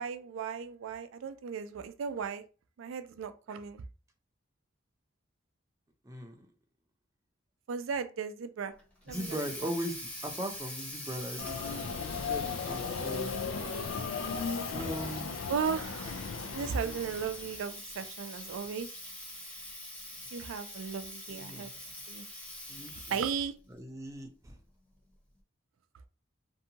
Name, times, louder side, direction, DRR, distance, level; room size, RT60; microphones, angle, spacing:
voice 1, 0.0-2.4 2.8-3.8 7.7-8.7 9.1-9.4 15.5-16.2 16.5-18.9 20.3-21.7 22.1-22.2 23.1-23.5, right 6 dB, 85° right, 10 dB, 0.4 m, -36 dB
Water tap faucet, 8.8-23.5, left 1 dB, 5° left, 0.8 m, -44 dB
voice 2, 9.1-11.9 12.2-13.3 14.7-15.5 21.3-21.7 22.7-23.2 23.7-24.6, equal, 15° right, 3 dB, 0.5 m, -39 dB
Subway metro underground, 11.4-17.6, left 5 dB, 80° left, 0.3 m, -36 dB
2.6 x 2.2 x 2.7 m, 0.35 s
head